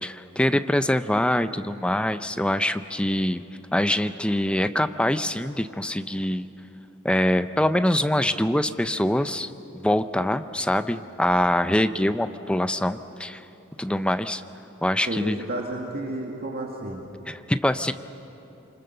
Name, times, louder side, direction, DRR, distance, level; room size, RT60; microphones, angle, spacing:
voice 1, 0.0-3.4 3.7-6.5 7.0-13.4 13.8-14.4 14.8-15.4 17.3-17.9, left 1 dB, 5° left, 10 dB, 0.6 m, -24 dB
voice 2, 15.0-17.0, right 1 dB, 50° right, 0 dB, 2.1 m, -31 dB
27.0 x 25.5 x 6.8 m, 2.9 s
head